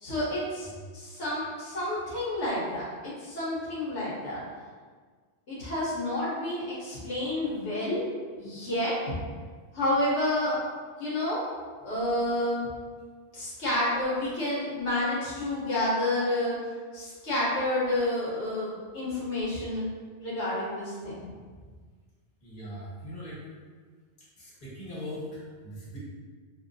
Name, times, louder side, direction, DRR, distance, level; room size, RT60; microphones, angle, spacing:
voice 1, 0.0-4.4 5.5-8.0 8.4-9.2 9.7-10.6 11.0-11.4 11.8-12.7 13.3-16.6 16.9-19.8 20.2-21.2, left 1 dB, 75° left, -8 dB, 1.2 m, -29 dB
voice 2, 22.4-23.4 24.2-26.0, equal, 45° left, -8 dB, 1.3 m, -41 dB
5.2 x 2.2 x 2.6 m, 1.5 s
omnidirectional pair, 1.2 m